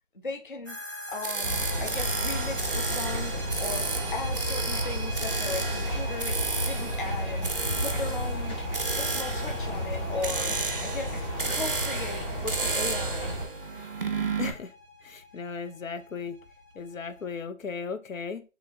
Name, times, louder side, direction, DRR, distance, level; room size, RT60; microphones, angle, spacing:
voice 1, 0.2-0.8 1.1-6.3 6.7-7.5 7.8-8.6 8.9-10.5 10.8-11.2 11.5-13.6, left 3 dB, 40° left, 3 dB, 0.5 m, -37 dB
sound 1, 0.7-17.4, equal, 20° right, 0.8 m, -44 dB
sound 2, 1.2-14.5, right 4 dB, 45° right, 0.5 m, -33 dB
sound 3, 1.4-13.5, equal, 20° left, 0.9 m, -32 dB
voice 2, 14.4-14.7 15.0-16.4 16.8-18.4, left 5 dB, 80° left, 9 dB, 0.7 m, -36 dB
2.8 x 2.6 x 4.1 m, 0.31 s
figure-of-eight pair, 165°, 39 cm